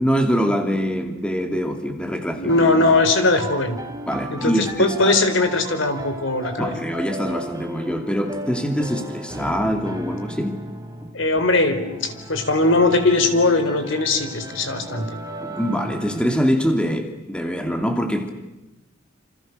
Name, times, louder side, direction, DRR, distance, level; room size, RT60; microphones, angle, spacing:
voice 1, 0.0-2.6 4.1-5.2 6.6-10.6 11.0-11.1 15.4-18.3, equal, 5° left, 5 dB, 2.8 m, -24 dB
voice 2, 2.4-3.8 4.3-6.7 11.1-15.1, left 2 dB, 75° left, 8 dB, 4.2 m, -20 dB
sound 1, 2.5-16.4, right 1 dB, 20° right, 3.0 m, -35 dB
28.5 x 27.5 x 6.7 m, 1.0 s
head